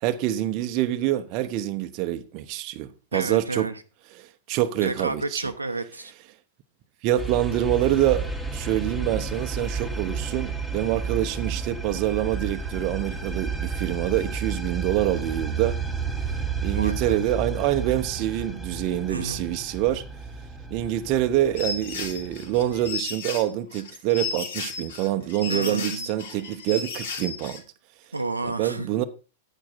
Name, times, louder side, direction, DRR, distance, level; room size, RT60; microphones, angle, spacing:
voice 1, 0.0-3.7 4.2-5.5 7.0-15.8 16.3-20.0 20.7-27.6 28.6-29.0, right 13 dB, 40° right, 1.0 m, -26 dB
voice 2, 3.1-3.8 4.8-6.1 16.7-17.2 19.1-19.4 25.5-26.1 28.1-28.9, right 2 dB, 90° right, 0.9 m, -31 dB
sound 1, 7.2-22.9, right 5 dB, 5° left, 2.3 m, -32 dB
sound 2, 21.6-27.6, left 4 dB, 60° left, 2.9 m, -34 dB
10.0 x 8.8 x 4.1 m
figure-of-eight pair, 100°, 0 cm